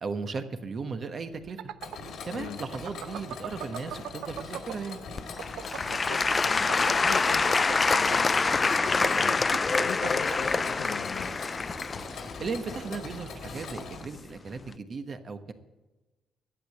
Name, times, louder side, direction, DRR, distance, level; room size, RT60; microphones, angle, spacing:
voice 1, 0.0-1.6 2.3-5.0 12.4-15.5, right 4 dB, 45° right, 7 dB, 1.3 m, -36 dB
sound 1, 1.3-4.9 5.2-10.6, right 11 dB, 80° right, 0.5 m, -38 dB
Mechanisms, 1.8-14.0, left 4 dB, 75° left, 1.9 m, -42 dB
Applause / Crowd, 5.2-14.0 14.7-14.8, left 4 dB, 30° left, 0.3 m, -26 dB
voice 2, 5.9-11.4, left 11 dB, 90° left, 13 dB, 0.5 m, -41 dB
11.5 x 8.6 x 7.6 m, 1.1 s
cardioid pair, 90°, 0 cm